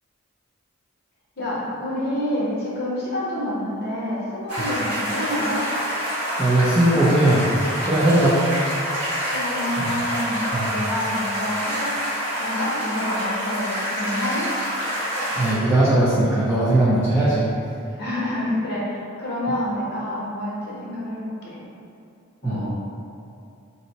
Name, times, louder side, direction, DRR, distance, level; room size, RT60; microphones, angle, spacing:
voice 1, 1.4-5.6 9.3-11.9 12.3-14.5 18.0-21.6 22.4-22.7, left 1 dB, 50° left, -7 dB, 0.8 m, -28 dB
sound 1, 4.5-15.5, equal, 50° right, 1.3 m, -27 dB
voice 2, 6.4-8.4 9.8-9.9 10.5-10.7 15.4-17.5 22.4-22.6, right 1 dB, 10° right, -10 dB, 0.3 m, -19 dB
2.6 x 2.0 x 3.9 m, 2.6 s
head